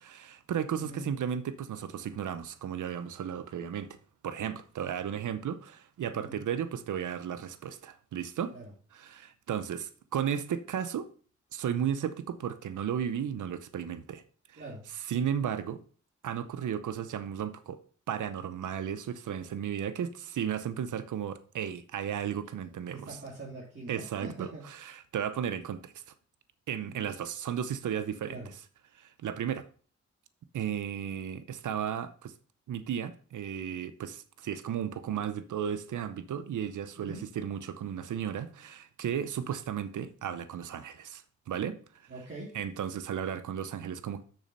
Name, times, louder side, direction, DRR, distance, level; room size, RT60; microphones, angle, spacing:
voice 1, 0.0-4.0 4.2-8.5 8.9-11.1 11.5-14.2 14.5-14.6 15.1-15.8 16.2-17.8 18.1-23.2 23.9-25.9 26.7-28.4 28.9-29.7 30.5-32.3 32.7-41.8 42.5-44.2, right 8 dB, 85° right, 0.8 m, -34 dB
voice 2, 0.7-1.1 6.1-6.4 8.5-8.7 14.6-14.8 22.9-24.6 26.8-27.1 28.3-28.5 37.0-37.2 42.1-42.5, right 2 dB, 40° right, 2.8 m, -43 dB
6.6 x 6.3 x 5.4 m
cardioid pair, 65°, 30 cm